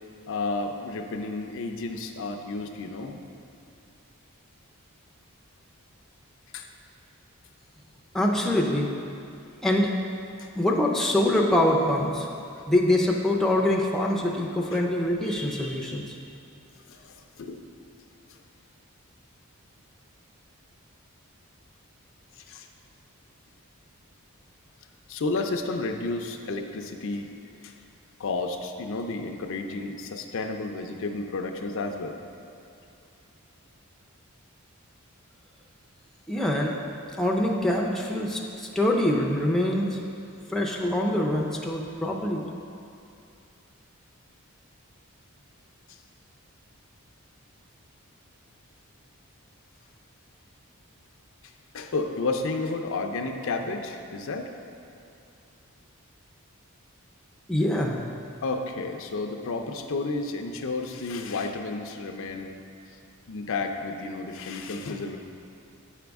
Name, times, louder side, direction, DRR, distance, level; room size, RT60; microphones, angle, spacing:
voice 1, 0.3-3.2 6.5-6.7 10.4-10.5 16.9-17.6 22.4-22.7 25.1-27.3 27.6-27.7 28.2-32.2 51.7-54.5 58.4-62.5 63.3-65.2, left 3 dB, 60° left, 4 dB, 0.5 m, -31 dB
voice 2, 8.1-8.9 9.6-9.9 10.6-12.3 12.7-16.2 36.3-36.7 37.2-40.0 40.5-42.4 57.5-58.0, left 1 dB, ahead, -2 dB, 0.5 m, -24 dB
8.3 x 5.1 x 3.5 m, 2.6 s
head